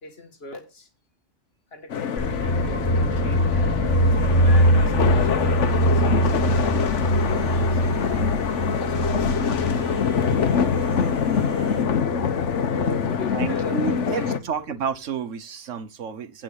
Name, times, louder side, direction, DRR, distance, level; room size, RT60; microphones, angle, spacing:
voice 1, 0.0-0.9 1.7-3.8 4.3-8.9 9.2-9.3 12.7-14.8, left 2 dB, 55° left, 2.0 m, -40 dB
sound 1, 1.9-14.4, left 7 dB, 70° left, 1.3 m, -24 dB
sound 2, 2.2-14.1, right 1 dB, 10° left, 1.8 m, -24 dB
sound 3, 4.1-11.8, right 2 dB, 50° right, 6.2 m, -43 dB
voice 2, 13.3-16.4, right 6 dB, 75° right, 1.4 m, -30 dB
8.8 x 6.0 x 6.4 m
omnidirectional pair, 1.3 m